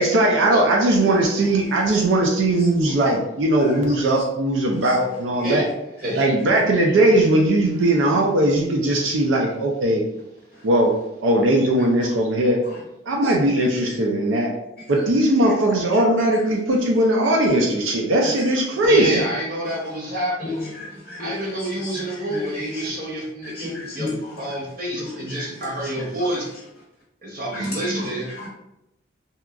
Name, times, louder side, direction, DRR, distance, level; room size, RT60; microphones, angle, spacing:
voice 1, 0.0-5.7 6.2-10.0 10.6-10.9 11.2-12.6 13.1-14.5 14.9-19.2, right 1 dB, 90° right, 0 dB, 0.4 m, -19 dB
voice 2, 1.5-2.0 2.6-2.7 3.6-3.7 4.7-5.0 9.0-9.1 10.5-10.6 12.6-12.8 13.2-14.0 14.9-15.0 15.4-15.6 15.9-16.0 16.3-16.4 18.2-18.5 18.7-19.1 20.4-22.9 23.4-24.5 25.0-26.4 27.5-28.5, left 1 dB, 50° left, -3 dB, 0.6 m, -34 dB
voice 3, 18.9-20.5 21.2-26.5 27.2-28.3, right 1 dB, 50° right, -2 dB, 0.8 m, -28 dB
2.8 x 2.3 x 2.3 m, 0.86 s
head